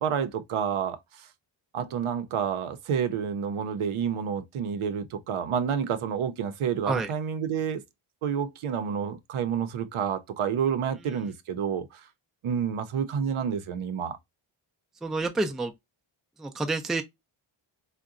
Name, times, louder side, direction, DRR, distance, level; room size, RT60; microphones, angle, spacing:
voice 1, 0.0-1.3 1.7-7.8 8.2-12.1 12.4-14.2, right 7 dB, 75° right, 0.6 m, -29 dB
voice 2, 15.0-15.7 16.4-17.0, right 3 dB, ahead, 0.3 m, -29 dB
3.7 x 2.2 x 2.4 m
wide cardioid pair, 120°, 50 cm